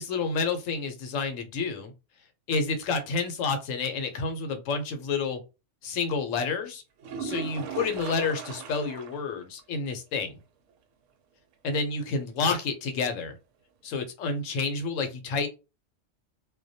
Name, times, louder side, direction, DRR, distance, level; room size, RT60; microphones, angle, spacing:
voice 1, 0.0-1.9 2.5-5.4 5.8-6.8 7.2-10.4 11.6-13.4 13.8-15.5, left 4 dB, 85° left, 1.0 m, -29 dB
sound 1, 7.0-9.3 9.6-9.7 10.1-10.2 14.0-14.1, right 5 dB, 80° right, 0.9 m, -37 dB
2.2 x 2.1 x 2.6 m
omnidirectional pair, 1.3 m